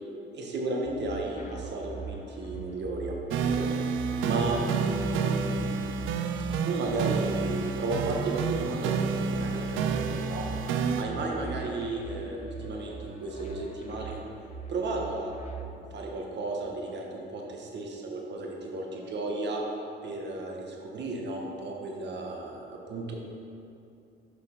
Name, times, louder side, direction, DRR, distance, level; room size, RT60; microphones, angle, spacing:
voice 1, 0.3-5.8 6.6-10.4 10.9-14.2 14.7-15.3 15.6-19.6 20.0-23.2, right 2 dB, 60° right, 0 dB, 1.3 m, -34 dB
sound 1, 0.8-15.6, right 4 dB, 35° left, 0.8 m, -42 dB
sound 2, 3.3-11.0, right 5 dB, 85° right, 0.5 m, -29 dB
sound 3, 9.3-14.3, equal, 25° right, 1.1 m, -51 dB
6.4 x 5.4 x 5.4 m, 2.6 s
cardioid pair, 90°, 20 cm